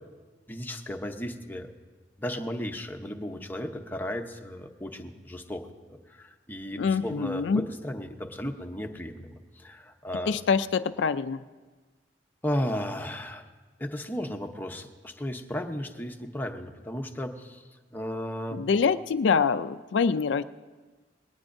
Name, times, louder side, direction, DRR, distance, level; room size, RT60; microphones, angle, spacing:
voice 1, 0.5-1.7 2.2-10.4 12.4-13.4 13.8-17.6 17.9-18.6, equal, 10° left, 4 dB, 0.8 m, -35 dB
voice 2, 6.8-7.7 10.3-11.4 18.5-20.4, left 5 dB, 75° left, 12 dB, 0.4 m, -25 dB
20.5 x 18.5 x 2.6 m, 1.4 s
head